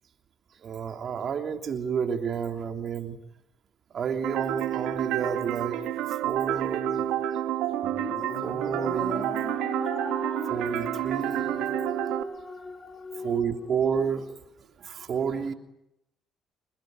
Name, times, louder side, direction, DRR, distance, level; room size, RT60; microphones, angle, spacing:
voice 1, 0.6-3.2 3.9-5.8 6.2-7.1 8.4-9.3 10.5-11.7 13.2-14.3 14.8-15.5, right 7 dB, 50° right, 6 dB, 3.2 m, -30 dB
sound 1, 4.2-12.2, right 12 dB, 75° right, 2.3 m, -29 dB
sound 2, 7.8-14.4, left 4 dB, 35° left, 2.8 m, -40 dB
29.0 x 22.0 x 9.3 m, 0.82 s
hypercardioid pair, 60°, 0 cm